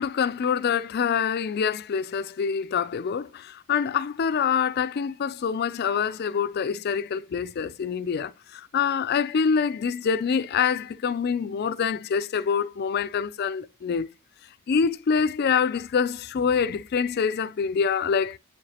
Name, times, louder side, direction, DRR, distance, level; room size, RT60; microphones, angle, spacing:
voice 1, 0.0-14.1 14.7-18.4, left 6 dB, 50° left, 0.4 m, -25 dB
7.7 x 4.9 x 2.8 m
head